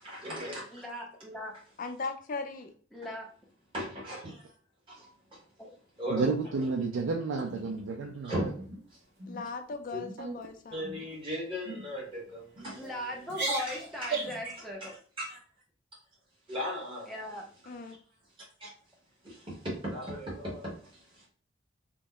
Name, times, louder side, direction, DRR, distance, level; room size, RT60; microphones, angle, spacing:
voice 1, 0.0-0.8 3.7-4.4 4.9-5.4 6.0-6.3 8.2-8.5 8.9-9.0 10.7-12.9 13.6-14.9 15.2-15.4 16.5-17.1 18.6-18.7 19.2-21.3, equal, 30° right, 1.2 m, -37 dB
voice 2, 0.7-1.5 2.9-3.3 5.6-5.7 12.8-14.9 17.1-17.4, left 1 dB, ahead, 0.7 m, -39 dB
voice 3, 1.8-2.7 9.3-10.8 17.7-18.0, left 4 dB, 45° left, 0.4 m, -38 dB
voice 4, 6.1-8.4 10.2-10.4, right 4 dB, 85° right, 0.4 m, -31 dB
sound 1, 7.5-8.1 8.6-8.8 9.2-9.5 9.8-10.2 10.8-11.2 11.6-11.8 12.5-12.9 13.3-14.5, right 3 dB, 60° right, 1.0 m, -36 dB
3.0 x 2.1 x 3.7 m
head